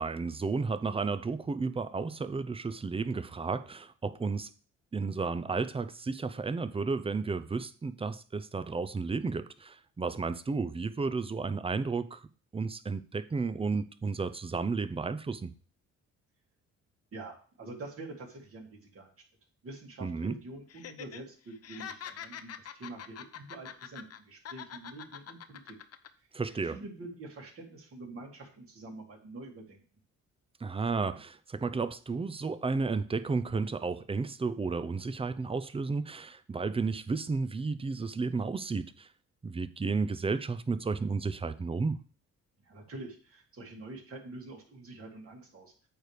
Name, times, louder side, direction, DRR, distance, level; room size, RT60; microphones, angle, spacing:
voice 1, 0.0-4.5 4.9-12.2 12.5-15.5 20.0-20.4 26.3-26.8 30.6-39.1 39.4-42.0, right 4 dB, 20° right, 0.6 m, -32 dB
voice 2, 17.1-19.2 19.6-25.8 26.6-29.8 42.6-45.7, right 2 dB, 50° right, 2.8 m, -46 dB
Laughter, 20.7-21.2 21.5-24.2 24.4-26.1 26.4-26.6, left 9 dB, 55° left, 0.8 m, -44 dB
8.8 x 3.4 x 6.7 m
cardioid pair, 90°, 30 cm